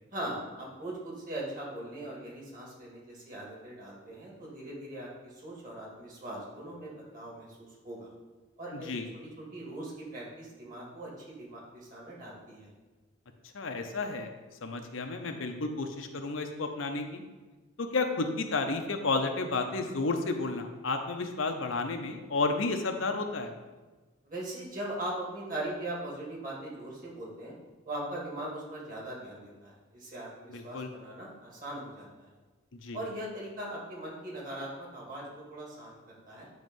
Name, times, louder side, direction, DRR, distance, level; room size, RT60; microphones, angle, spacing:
voice 1, 0.1-8.1 8.6-12.7 24.2-27.6 27.9-32.3 32.9-35.2 35.5-36.5, right 1 dB, 40° right, -4 dB, 2.3 m, -40 dB
voice 2, 13.5-14.3 14.6-17.2 17.8-23.5 30.5-30.9 32.8-33.0, left 3 dB, 80° left, 5 dB, 0.8 m, -31 dB
9.2 x 3.2 x 5.3 m, 1.3 s
head